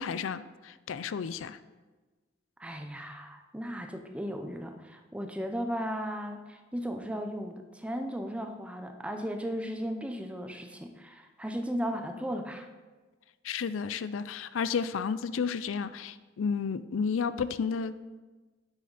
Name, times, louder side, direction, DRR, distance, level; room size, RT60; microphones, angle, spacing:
voice 1, 0.0-1.6 13.4-18.0, left 6 dB, 90° left, 14 dB, 0.4 m, -32 dB
voice 2, 2.6-12.7, equal, 5° right, 5 dB, 0.7 m, -36 dB
9.9 x 7.6 x 4.0 m, 1.3 s
head